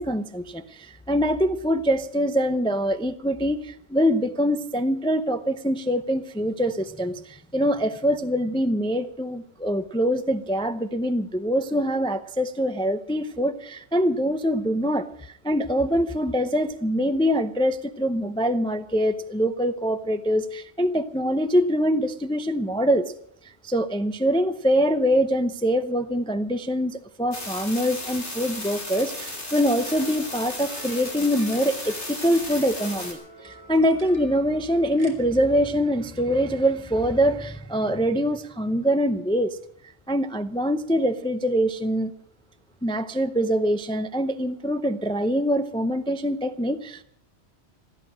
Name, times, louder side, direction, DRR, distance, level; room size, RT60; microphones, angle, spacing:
voice 1, 0.0-23.1 23.4-39.6 40.1-42.1 42.8-47.0, equal, 5° left, 0.5 m, -24 dB
sound 1, 27.3-33.1, left 2 dB, 80° left, 3.5 m, -35 dB
sound 2, 29.8-35.1, right 1 dB, 30° right, 2.7 m, -46 dB
16.5 x 13.0 x 6.2 m
omnidirectional pair, 1.2 m